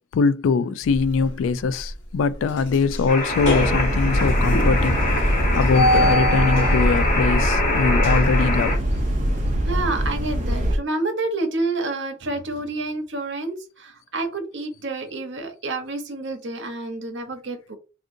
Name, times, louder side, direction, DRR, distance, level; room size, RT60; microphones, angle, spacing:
voice 1, 0.1-8.8, left 4 dB, 80° left, 0.3 m, -22 dB
sound 1, 0.8-1.4 1.8-1.9 2.3-10.8, equal, 65° left, 1.0 m, -25 dB
sound 2, 3.1-8.8, left 2 dB, 40° left, 0.9 m, -25 dB
sound 3, 3.3-10.8, equal, 40° right, 0.6 m, -24 dB
voice 2, 9.7-17.8, right 2 dB, 65° right, 0.8 m, -29 dB
3.6 x 2.4 x 2.6 m
head